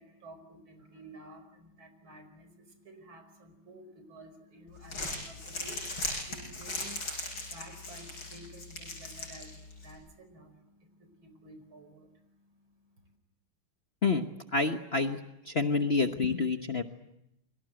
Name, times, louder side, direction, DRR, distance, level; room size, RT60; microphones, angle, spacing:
voice 1, 0.0-13.2, right 1 dB, 70° right, 8 dB, 5.7 m, -52 dB
Crumpling crinkling, 4.7-9.9, left 2 dB, 70° left, 8.7 m, -39 dB
voice 2, 14.5-15.2 15.5-16.8, left 4 dB, 35° left, 6 dB, 1.1 m, -28 dB
29.0 x 23.5 x 7.7 m, 0.83 s
omnidirectional pair, 2.3 m